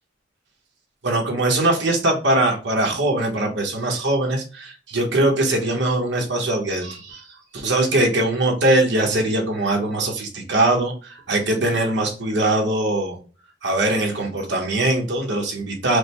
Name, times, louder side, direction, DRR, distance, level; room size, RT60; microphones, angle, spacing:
voice 1, 1.0-7.2 7.5-13.2 13.6-16.0, right 2 dB, 65° right, 1 dB, 1.3 m, -21 dB
5.0 x 2.2 x 3.1 m, 0.36 s
head